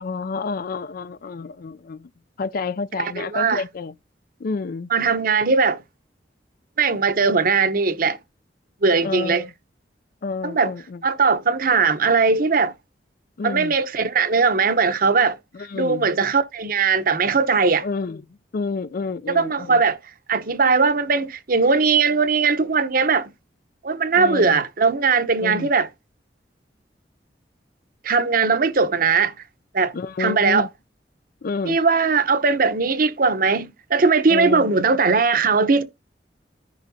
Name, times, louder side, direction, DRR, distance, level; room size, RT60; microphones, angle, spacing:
voice 1, 0.0-2.1 2.4-3.9 4.4-4.9 9.0-9.5 10.2-11.0 13.4-13.8 15.5-16.1 17.8-19.8 24.1-24.6 25.4-25.7 29.9-30.7 31.4-31.8 34.3-34.7, left 4 dB, 55° left, 0.4 m, -29 dB
voice 2, 3.0-3.6 4.9-5.8 6.8-8.2 8.8-9.4 10.4-10.7 11.0-12.7 13.4-15.4 15.7-17.8 19.3-20.0 20.3-23.3 23.8-25.9 28.0-29.3 29.7-30.7 31.7-35.8, right 4 dB, 55° right, 0.9 m, -19 dB
14.5 x 4.9 x 2.7 m
head